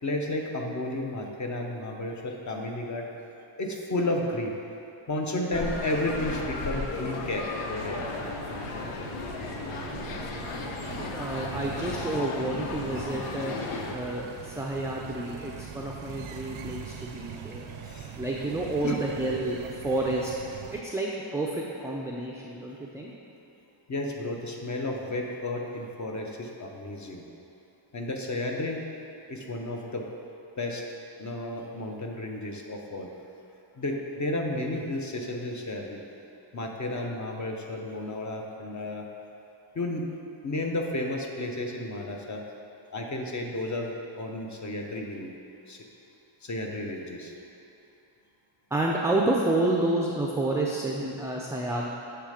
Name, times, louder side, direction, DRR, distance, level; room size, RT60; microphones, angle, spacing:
voice 1, 0.0-3.1 3.6-4.6 5.1-8.0 17.7-18.2 18.8-19.0 23.9-27.2 27.9-28.9 29.3-30.1 30.6-30.8 31.2-33.1 33.7-36.0 36.5-39.1 39.7-40.1 40.4-42.4 42.9-45.4 45.7-45.8 46.4-47.3, left 1 dB, 35° left, 1 dB, 0.8 m, -32 dB
Outside Deck Restaurant, 5.5-14.0, left 3 dB, 90° left, 0.7 m, -35 dB
sound 1, 7.8-20.8, right 8 dB, 75° right, 0.6 m, -42 dB
voice 2, 11.2-13.5 13.9-17.7 18.2-19.6 19.8-20.3 20.7-23.1 48.7-51.9, right 2 dB, 5° right, -2 dB, 0.4 m, -29 dB
6.9 x 3.3 x 4.9 m, 2.8 s
cardioid pair, 75°, 49 cm